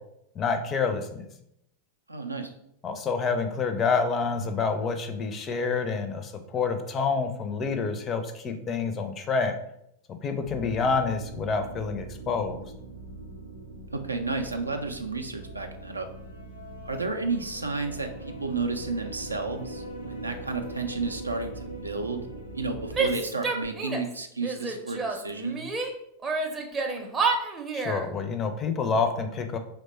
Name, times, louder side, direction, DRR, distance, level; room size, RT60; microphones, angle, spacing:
voice 1, 0.4-1.3 2.8-9.6 10.1-12.6 27.7-29.6, left 5 dB, 25° left, 7 dB, 0.4 m, -28 dB
voice 2, 2.1-2.5 13.9-16.1 16.8-22.2 22.5-25.6, right 3 dB, 80° right, 5 dB, 0.4 m, -32 dB
sound 1, 10.4-23.2, right 2 dB, 70° left, 0.7 m, -41 dB
Female speech woman speaking / Yell, 22.9-24.1 24.4-25.9 26.2-28.1, right 4 dB, 20° right, 0.5 m, -29 dB
3.1 x 2.1 x 4.1 m, 0.77 s
figure-of-eight pair, 90°, 0 cm